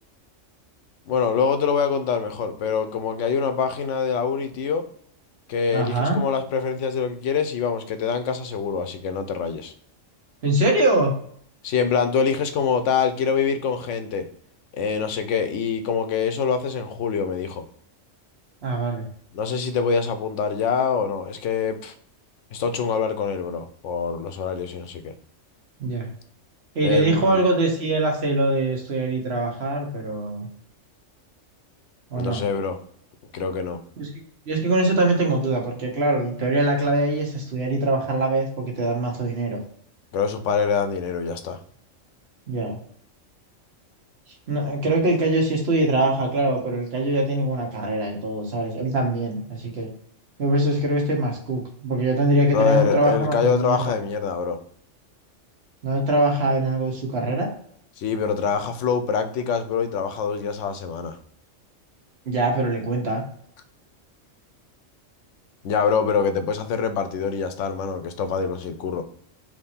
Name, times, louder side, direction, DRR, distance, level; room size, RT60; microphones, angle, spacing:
voice 1, 1.1-4.8 5.5-9.7 11.6-14.3 14.7-17.6 19.3-21.9 22.5-25.1 26.8-27.4 32.1-32.8 33.3-33.8 40.1-41.6 52.5-54.6 58.0-61.2 65.6-69.0, left 6 dB, 75° left, 9 dB, 0.9 m, -25 dB
voice 2, 5.7-6.2 10.4-11.1 18.6-19.0 25.8-26.1 26.7-30.5 32.1-32.4 34.0-34.1 34.5-39.6 42.5-42.8 44.5-49.9 50.4-53.9 55.8-57.5 62.3-63.2, right 2 dB, 55° right, 1 dB, 1.2 m, -23 dB
3.6 x 3.0 x 4.1 m, 0.63 s
omnidirectional pair, 1.3 m